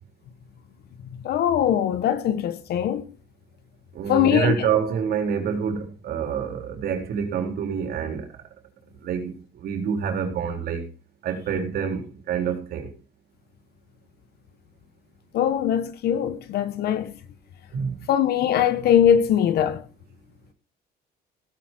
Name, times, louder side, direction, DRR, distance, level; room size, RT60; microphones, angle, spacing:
voice 1, 1.2-3.0 4.1-4.7 15.3-17.1 18.1-19.8, left 9 dB, 70° left, 1.6 m, -21 dB
voice 2, 4.0-8.2 9.0-9.3 9.6-10.8 11.2-12.0 12.3-12.9 17.7-17.9, right 7 dB, 65° right, 4.0 m, -26 dB
16.5 x 10.0 x 4.6 m
cardioid pair, 110°, 17 cm